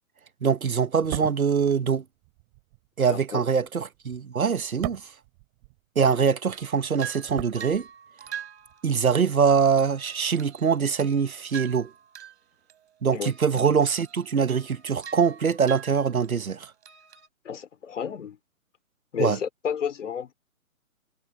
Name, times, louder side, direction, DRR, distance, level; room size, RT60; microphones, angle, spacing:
voice 1, 0.4-2.0 3.0-5.1 6.0-7.9 8.8-11.9 13.0-16.7 19.2-19.4, right 6 dB, 85° right, 1.1 m, -23 dB
sound 1, 0.9-6.2 6.5-8.3 8.6-8.8, right 30 dB, 30° right, 5.5 m, -39 dB
voice 2, 3.1-3.5 13.1-13.3 17.4-18.4 19.1-20.3, left 7 dB, 60° left, 3.3 m, -31 dB
sound 2, 6.5-9.3 9.8-12.4 12.7-13.0 13.2-16.5 16.8-17.3, right 9 dB, 50° right, 4.5 m, -43 dB
figure-of-eight pair, 135°, 41 cm